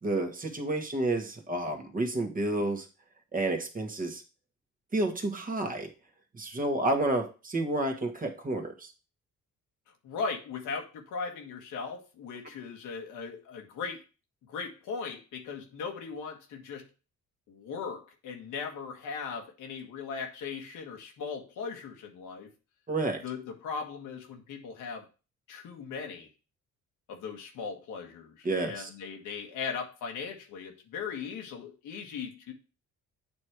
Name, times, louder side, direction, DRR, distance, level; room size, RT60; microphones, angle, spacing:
voice 1, 0.0-2.9 3.3-4.2 4.9-5.9 6.3-8.9 22.9-23.2 28.4-28.9, right 2 dB, 30° right, 4 dB, 1.5 m, -30 dB
voice 2, 10.0-14.0 14.4-16.9 17.5-22.5 23.2-25.1 25.5-26.3 27.1-32.5, left 5 dB, 85° left, 3 dB, 1.6 m, -38 dB
8.6 x 3.2 x 4.7 m, 0.33 s
cardioid pair, 90°, 30 cm